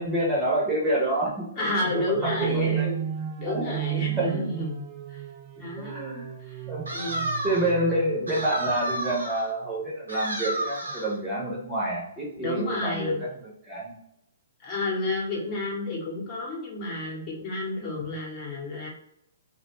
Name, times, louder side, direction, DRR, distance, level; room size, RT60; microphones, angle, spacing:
voice 1, 0.0-1.6 2.1-2.9 3.5-3.6 4.1-4.5 5.8-6.3 6.7-6.9 7.4-13.3 13.6-14.0, right 1 dB, 15° right, -5 dB, 0.9 m, -28 dB
voice 2, 1.6-3.0 3.4-5.2 5.6-5.9 6.4-6.6 6.9-7.3 12.4-13.2 14.6-18.9, left 2 dB, 35° left, -3 dB, 1.0 m, -31 dB
sound 1, 2.2-8.4, right 12 dB, 35° right, 0.3 m, -33 dB
sound 2, 6.9-7.7 8.3-9.5 10.1-11.2, right 1 dB, 90° right, 0.7 m, -31 dB
2.3 x 2.2 x 3.1 m, 0.76 s
figure-of-eight pair, 125°, 0 cm